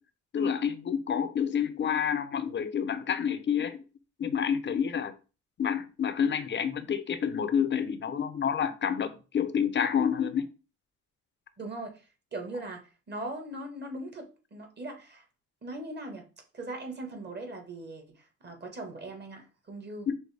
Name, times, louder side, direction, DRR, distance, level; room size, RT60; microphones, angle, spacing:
voice 1, 0.3-3.8 4.2-5.1 5.6-10.5 20.1-20.2, left 7 dB, 40° left, 0.5 m, -28 dB
voice 2, 11.6-15.2 15.6-16.3 16.5-20.1, right 2 dB, 35° right, 1.3 m, -40 dB
6.1 x 2.1 x 3.3 m
cardioid pair, 90°, 30 cm